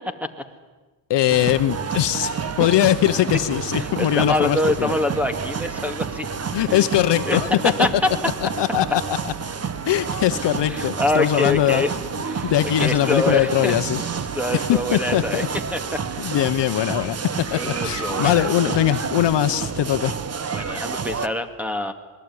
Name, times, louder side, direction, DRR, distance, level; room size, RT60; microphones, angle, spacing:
voice 1, 1.1-4.9 6.5-7.7 8.4-9.3 9.9-11.8 12.4-14.0 14.5-15.5 16.2-20.1, left 12 dB, 55° left, 11 dB, 1.1 m, -21 dB
sound 1, 1.3-21.3, right 6 dB, 30° right, 1.3 m, -29 dB
voice 2, 3.7-6.3 6.7-6.8 7.3-7.4 7.8-7.9 10.7-11.9 12.3-12.5 12.8-13.7 14.3-15.4 15.7-16.0 16.3-16.4 17.5-18.8 20.5-21.9, left 1 dB, 5° right, 9 dB, 2.2 m, -25 dB
26.0 x 20.5 x 9.6 m, 1.2 s
cardioid pair, 115°, 49 cm